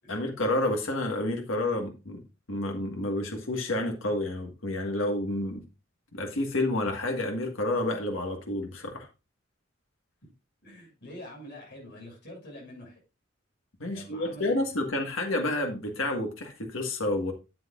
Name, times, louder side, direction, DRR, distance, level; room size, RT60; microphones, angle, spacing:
voice 1, 0.1-2.2 2.5-5.6 6.1-9.1 13.8-17.3, left 1 dB, 80° left, 3 dB, 1.6 m, -29 dB
voice 2, 10.6-13.0 13.9-14.7, left 1 dB, 60° left, -1 dB, 6.5 m, -45 dB
12.0 x 7.9 x 2.5 m, 0.28 s
head